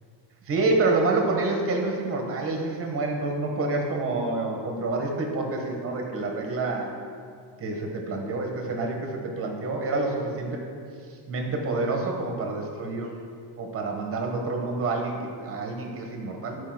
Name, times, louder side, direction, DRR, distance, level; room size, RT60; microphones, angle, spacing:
voice 1, 0.5-6.9 7.6-10.6 11.3-13.1 13.6-16.6, right 3 dB, 25° right, 1 dB, 1.0 m, -28 dB
11.5 x 4.7 x 6.0 m, 2.2 s
cardioid pair, 175°, 49 cm